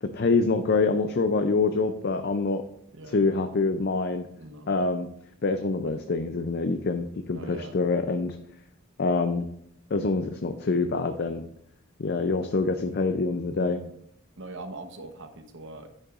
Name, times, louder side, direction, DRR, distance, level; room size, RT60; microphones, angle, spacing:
voice 1, 0.0-2.6 3.1-4.3 4.7-5.1 5.4-8.4 9.0-9.5 9.9-11.5 12.0-13.8, left 3 dB, 50° left, 8 dB, 0.5 m, -25 dB
voice 2, 2.9-3.4 4.4-4.9 7.3-7.8 13.6-13.9 14.4-15.9, right 2 dB, 60° right, 7 dB, 1.0 m, -42 dB
9.7 x 8.6 x 2.5 m, 0.73 s
head